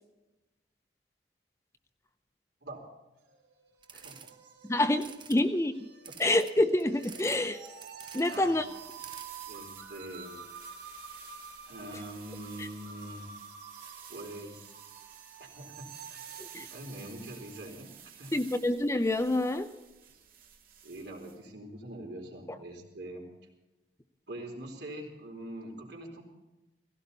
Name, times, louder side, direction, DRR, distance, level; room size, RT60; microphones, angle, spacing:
sound 1, 3.2-17.8, right 6 dB, 90° right, 3.7 m, -49 dB
sound 2, 3.8-4.3 4.9-5.4 6.0-7.4 7.7-8.4 8.7-9.3, right 7 dB, 25° right, 0.8 m, -49 dB
voice 1, 3.9-4.3 4.7-4.8 6.1-6.2 8.2-8.6 9.5-10.4 11.7-13.3 14.1-14.6 15.4-16.3 16.7-18.3 20.1-20.2 20.8-23.3 24.3-26.2, right 1 dB, 70° right, 1 dB, 3.9 m, -44 dB
voice 2, 4.6-5.9 6.2-7.6 8.1-8.7 12.6-12.7 16.4-16.7 18.3-19.7 22.5-22.6, left 1 dB, 15° left, 8 dB, 0.7 m, -27 dB
sound 3, 8.6-21.4, right 9 dB, 50° right, 2.2 m, -52 dB
17.5 x 16.5 x 4.1 m, 1.0 s
head